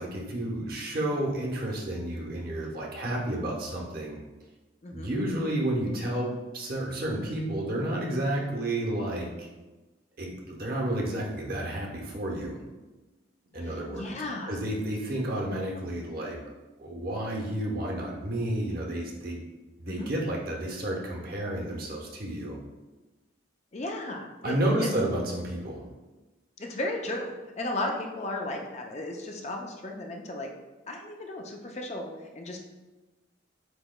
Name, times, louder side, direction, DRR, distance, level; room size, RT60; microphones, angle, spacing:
voice 1, 0.0-4.2 4.9-9.5 10.2-12.6 13.5-14.2 14.5-16.4 16.8-19.4 19.8-22.6 24.4-25.8, right 1 dB, 50° right, -1 dB, 0.9 m, -31 dB
voice 2, 4.8-5.1 13.6-14.6 19.9-20.1 23.7-24.9 26.6-30.5 30.9-32.6, left 2 dB, 35° left, 2 dB, 0.5 m, -35 dB
7.9 x 2.9 x 2.2 m, 1.1 s
head